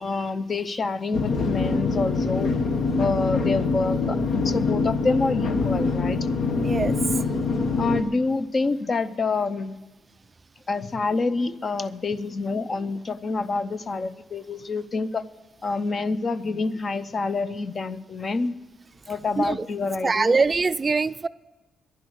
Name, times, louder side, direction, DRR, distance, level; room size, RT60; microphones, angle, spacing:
voice 1, 0.0-2.5 3.0-6.2 7.8-9.8 10.7-15.2 15.6-18.5 19.1-20.4, left 3 dB, 40° left, 13 dB, 0.6 m, -27 dB
sound 1, 1.1-8.0, left 4 dB, 70° left, 1.3 m, -24 dB
voice 2, 6.6-6.9 19.4-19.6 20.0-21.3, right 4 dB, 30° right, 15 dB, 0.3 m, -22 dB
11.0 x 10.5 x 8.0 m, 1.2 s
cardioid pair, 100°, 0 cm